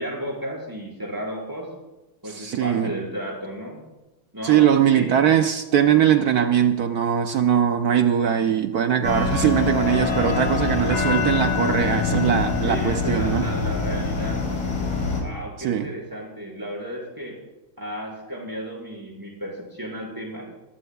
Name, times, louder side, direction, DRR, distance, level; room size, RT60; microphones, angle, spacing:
voice 1, 0.0-1.7 2.2-3.8 4.3-5.1 12.6-14.7 15.2-17.4 17.8-20.5, equal, 10° right, -3 dB, 5.1 m, -33 dB
voice 2, 2.2-2.9 4.4-13.5 15.6-15.9, right 9 dB, 75° right, 7 dB, 0.8 m, -21 dB
sound 1, 9.0-15.2, left 4 dB, 85° left, 4.5 m, -24 dB
23.5 x 14.5 x 2.3 m, 1.0 s
omnidirectional pair, 2.4 m